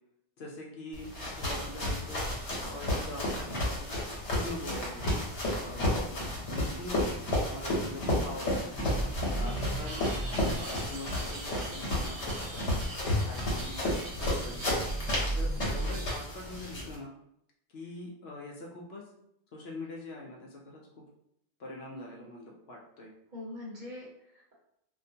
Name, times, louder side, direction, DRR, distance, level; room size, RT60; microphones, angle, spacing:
voice 1, 0.4-2.3 2.7-3.9 4.3-5.1 5.6-7.1 7.5-8.7 9.3-10.0 10.6-12.7 13.0-14.6 15.2-17.1 17.7-19.0 19.5-20.8 21.6-23.1, left 2 dB, 65° left, -1 dB, 0.8 m, -43 dB
sound 1, 0.9-17.0, left 1 dB, 90° left, 1.1 m, -32 dB
voice 2, 1.4-1.7 9.4-9.9 15.6-16.1 23.3-24.5, left 2 dB, 45° right, -6 dB, 0.9 m, -44 dB
sound 2, 8.7-16.3, right 1 dB, 70° right, 0.9 m, -37 dB
2.4 x 2.2 x 2.7 m, 0.77 s
omnidirectional pair, 1.2 m